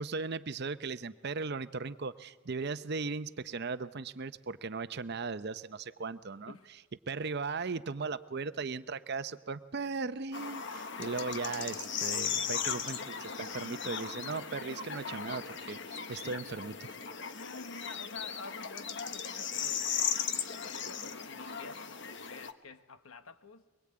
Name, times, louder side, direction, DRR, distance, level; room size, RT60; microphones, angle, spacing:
voice 1, 0.0-6.5 7.1-16.9, right 4 dB, 50° right, 0.7 m, -37 dB
sound 1, 10.3-22.5, left 7 dB, 60° left, 1.2 m, -37 dB
voice 2, 17.3-20.3 20.6-23.7, left 3 dB, 85° left, 1.1 m, -49 dB
23.0 x 22.0 x 8.6 m
head